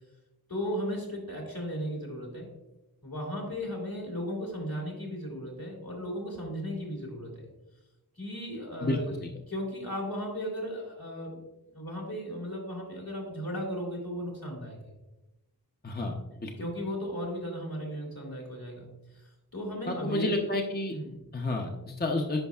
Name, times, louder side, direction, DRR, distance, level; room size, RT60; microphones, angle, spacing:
voice 1, 0.5-2.5 3.0-7.5 8.2-9.2 9.5-11.4 11.7-14.8 16.6-18.9 19.1-19.2 19.5-20.5 20.9-21.3, equal, 70° left, -1 dB, 2.4 m, -36 dB
voice 2, 8.8-9.2 15.8-16.2 16.4-16.5 19.9-20.9 21.3-22.4, left 2 dB, 25° left, 2 dB, 0.6 m, -30 dB
9.7 x 5.2 x 2.4 m, 1.0 s
wide cardioid pair, 40°, 37 cm